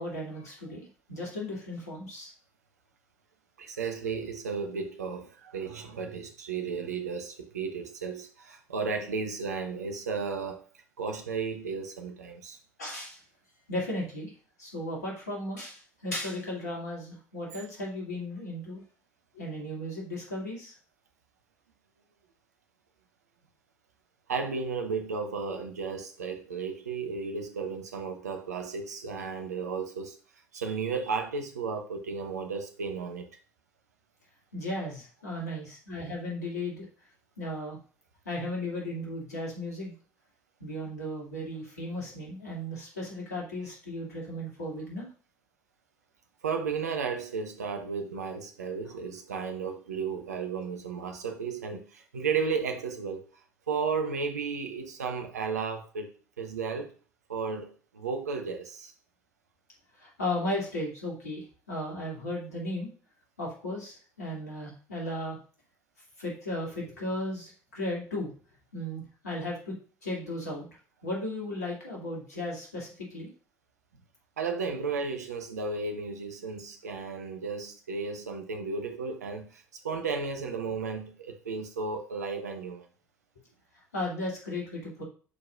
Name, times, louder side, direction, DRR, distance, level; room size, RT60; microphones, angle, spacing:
voice 1, 0.0-2.3 12.8-13.2 13.7-14.3 14.6-18.8 19.3-20.7 34.5-36.9 37.4-37.8 38.2-39.9 40.6-45.1 60.0-62.9 63.4-65.4 66.2-68.3 68.7-69.8 70.0-70.7 71.0-73.3 83.9-85.0, left 1 dB, 80° left, 2.6 m, -35 dB
voice 2, 3.6-10.6 11.0-12.6 24.3-30.1 30.5-33.3 46.4-53.2 53.7-56.1 56.4-56.9 57.3-58.9 74.4-82.8, right 5 dB, 80° right, 1.0 m, -34 dB
11.5 x 4.9 x 2.5 m
figure-of-eight pair, 55°, 9 cm